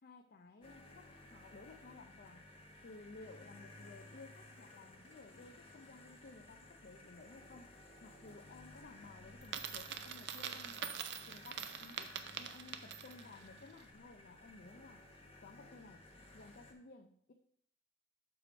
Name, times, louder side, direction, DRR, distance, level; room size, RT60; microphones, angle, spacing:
voice 1, 0.0-2.5 2.8-7.7 8.0-11.0 11.3-15.0 15.4-16.0 16.3-17.3, left 3 dB, 50° left, 4 dB, 0.5 m, -56 dB
sound 1, 0.6-16.7, left 2 dB, 30° left, 1.1 m, -57 dB
Coin (dropping), 9.4-13.3, right 8 dB, 65° right, 0.6 m, -44 dB
6.7 x 4.8 x 5.0 m, 0.67 s
head